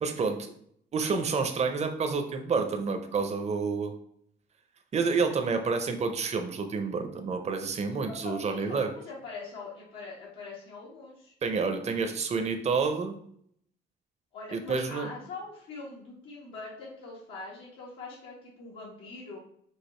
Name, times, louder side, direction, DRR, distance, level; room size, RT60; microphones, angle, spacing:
voice 1, 0.0-0.5 0.9-3.9 4.9-8.9 11.4-13.1 14.5-15.1, right 4 dB, 35° right, 6 dB, 0.6 m, -29 dB
voice 2, 8.1-11.3 14.3-19.4, left 3 dB, 85° left, -6 dB, 1.4 m, -43 dB
4.8 x 2.4 x 4.3 m, 0.68 s
cardioid pair, 90°, 20 cm